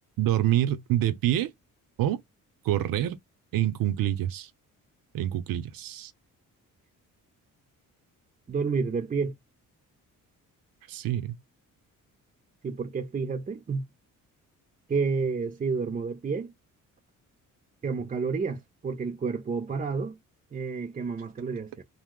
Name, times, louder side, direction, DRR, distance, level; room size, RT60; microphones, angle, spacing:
voice 1, 0.2-1.5 2.0-2.2 2.7-3.2 3.5-4.5 5.1-6.1 10.9-11.4, right 12 dB, 85° right, 0.6 m, -26 dB
voice 2, 8.5-9.3 12.6-13.9 14.9-16.5 17.8-20.2 20.5-21.8, right 5 dB, 25° right, 0.4 m, -30 dB
2.7 x 2.1 x 3.6 m
cardioid pair, 115°, 33 cm